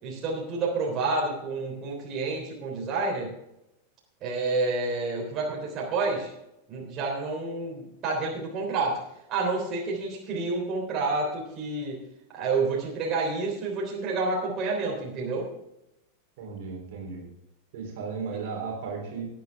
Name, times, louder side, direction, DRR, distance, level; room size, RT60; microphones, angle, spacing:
voice 1, 0.0-3.3 4.2-6.3 6.7-9.0 9.3-12.0 12.3-15.5 18.3-18.4, right 3 dB, 35° right, -1 dB, 3.4 m, -29 dB
voice 2, 16.4-17.2 17.7-19.3, right 5 dB, 50° right, 0 dB, 3.6 m, -35 dB
18.0 x 8.5 x 3.5 m, 0.86 s
figure-of-eight pair, 90°, 0 cm